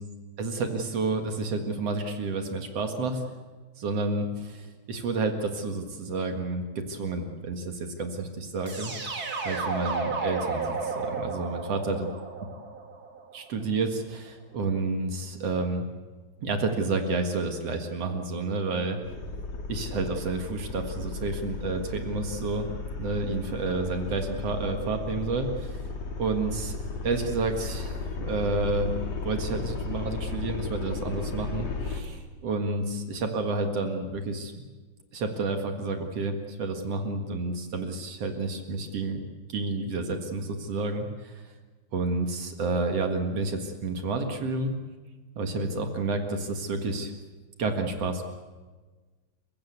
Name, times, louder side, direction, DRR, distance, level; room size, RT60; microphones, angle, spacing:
voice 1, 0.4-3.3 3.8-8.9 9.4-12.1 13.3-15.8 16.4-19.0 19.7-22.7 23.0-25.8 26.2-26.8 27.0-34.6 35.1-39.2 39.5-41.4 41.9-44.7 45.4-47.1 47.6-48.2, right 3 dB, 50° right, 5 dB, 2.0 m, -30 dB
sound 1, 8.7-13.6, right 4 dB, 30° right, 2.0 m, -33 dB
sound 2, 19.0-32.0, left 3 dB, 45° left, 3.2 m, -35 dB
29.0 x 15.5 x 8.2 m, 1.3 s
omnidirectional pair, 4.9 m